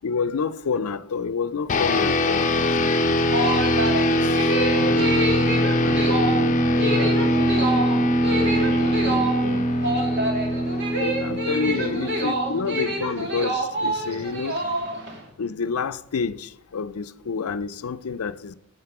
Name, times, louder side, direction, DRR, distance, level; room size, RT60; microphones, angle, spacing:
voice 1, 0.0-2.7 3.4-4.3 4.8-5.2 6.9-7.1 10.8-14.6 15.4-18.5, left 5 dB, 85° left, 0.5 m, -29 dB
sound 1, 1.7-13.4, equal, 35° left, 0.8 m, -22 dB
sound 2, 3.3-15.2, right 1 dB, 55° right, 2.3 m, -27 dB
voice 2, 3.8-4.5 4.8-10.0 11.6-12.5 13.6-13.7 14.1-14.7, equal, 75° right, 1.2 m, -37 dB
9.5 x 7.4 x 6.0 m
head